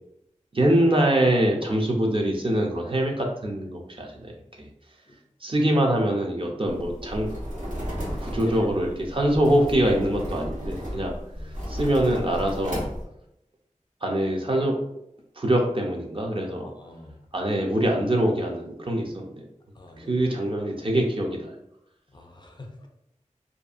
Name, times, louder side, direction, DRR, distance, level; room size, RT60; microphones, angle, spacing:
voice 1, 0.5-4.7 5.4-7.3 8.2-11.1 11.4-12.9 14.0-14.8 15.4-16.7 17.3-19.4 20.0-21.5, right 1 dB, 45° right, 0 dB, 0.5 m, -24 dB
sound 1, 6.7-13.0, equal, 85° right, 1.0 m, -34 dB
voice 2, 8.2-9.1 11.3-11.6 16.6-17.3 19.7-20.3 22.1-22.9, left 2 dB, 35° left, 3 dB, 0.4 m, -42 dB
2.6 x 2.3 x 2.5 m, 0.81 s
wide cardioid pair, 45°, 13 cm